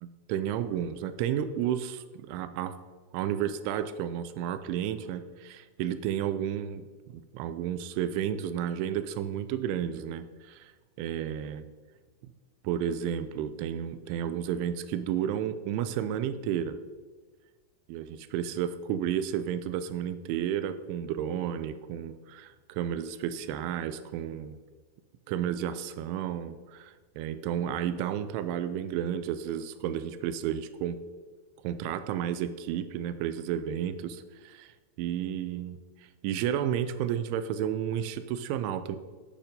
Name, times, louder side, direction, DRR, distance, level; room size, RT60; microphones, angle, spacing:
voice 1, 0.0-2.7 3.1-10.7 11.0-11.6 12.6-16.8 17.9-24.6 25.3-31.0 31.6-34.7 35.0-35.8 36.2-39.0, right 9 dB, 85° right, 12 dB, 3.0 m, -32 dB
8.8 x 8.7 x 5.1 m, 1.4 s
omnidirectional pair, 5.4 m